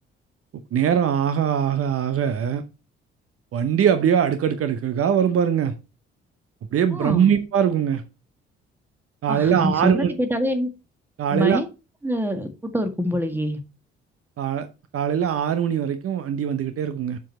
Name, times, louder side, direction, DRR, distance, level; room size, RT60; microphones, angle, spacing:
voice 1, 0.7-2.6 3.5-5.7 6.7-8.0 9.2-10.1 11.2-11.6 14.4-14.7 14.9-17.2, right 8 dB, 45° right, 0.9 m, -21 dB
voice 2, 6.9-7.3 9.3-10.7 11.3-11.7 12.0-13.6, equal, 5° right, 1.8 m, -25 dB
7.5 x 7.0 x 4.2 m
figure-of-eight pair, 40°, 32 cm